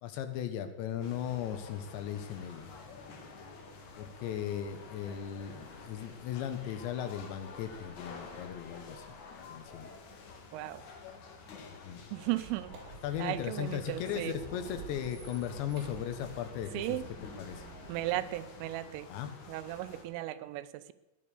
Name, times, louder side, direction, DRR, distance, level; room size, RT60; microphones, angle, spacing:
voice 1, 0.0-2.7 4.0-9.1 9.5-9.9 11.7-12.0 13.0-17.0 17.4-17.7 19.1-19.3, left 9 dB, 70° left, 8 dB, 3.2 m, -37 dB
sound 1, 1.0-20.1, left 4 dB, 55° left, 2.3 m, -50 dB
voice 2, 10.5-10.8 12.1-12.7 13.2-14.4 16.7-17.0 17.9-19.1 19.5-20.9, right 16 dB, 85° right, 14 dB, 3.3 m, -36 dB
Squeak, 12.2-18.6, right 4 dB, 65° right, 5.4 m, -50 dB
15.0 x 10.5 x 6.8 m, 1.0 s
omnidirectional pair, 5.7 m